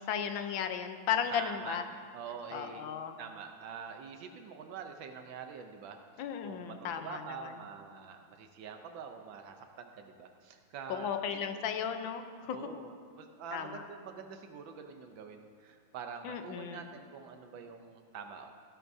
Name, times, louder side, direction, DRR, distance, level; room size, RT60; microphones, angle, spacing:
voice 1, 0.0-1.8 2.5-3.2 6.2-7.5 10.9-12.6 13.5-13.8 16.2-16.9, left 8 dB, 85° left, 7 dB, 1.5 m, -35 dB
voice 2, 1.3-1.8 2.1-2.9 3.2-11.7 12.5-18.5, right 6 dB, 80° right, 5 dB, 1.5 m, -46 dB
15.5 x 12.5 x 2.7 m, 2.1 s
omnidirectional pair, 2.1 m